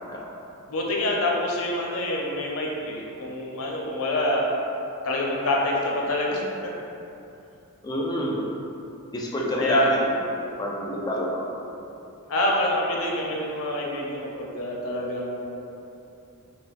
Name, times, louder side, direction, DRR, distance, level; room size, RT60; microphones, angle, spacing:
voice 1, 0.7-4.5 5.0-6.4 9.6-9.9 12.3-15.8, left 1 dB, 70° left, -2 dB, 0.5 m, -26 dB
voice 2, 7.8-8.4 9.1-10.2 10.6-11.4, left 1 dB, 20° left, -3 dB, 0.3 m, -27 dB
3.2 x 2.8 x 2.4 m, 2.8 s
head